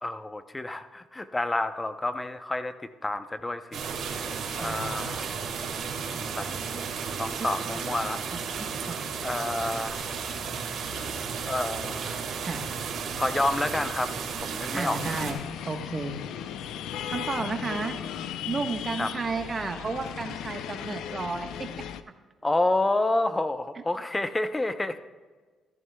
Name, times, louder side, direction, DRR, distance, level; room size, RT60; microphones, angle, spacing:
voice 1, 0.0-3.8 4.5-5.3 6.1-6.8 7.2-8.2 9.2-10.1 11.5-12.2 13.1-14.1 14.4-15.3 19.0-19.1 22.4-25.0, left 2 dB, 20° left, 10 dB, 0.7 m, -29 dB
sound 1, 3.7-15.3, right 6 dB, 75° right, 1.8 m, -33 dB
voice 2, 4.5-5.1 8.9-9.0 12.4-12.6 14.7-15.4 15.6-16.2 17.1-18.0 18.5-21.7, right 4 dB, 35° right, 5 dB, 1.2 m, -32 dB
sound 2, 15.0-22.0, left 9 dB, 85° left, 0.5 m, -36 dB
14.5 x 14.0 x 2.3 m, 1.4 s
cardioid pair, 90°, 0 cm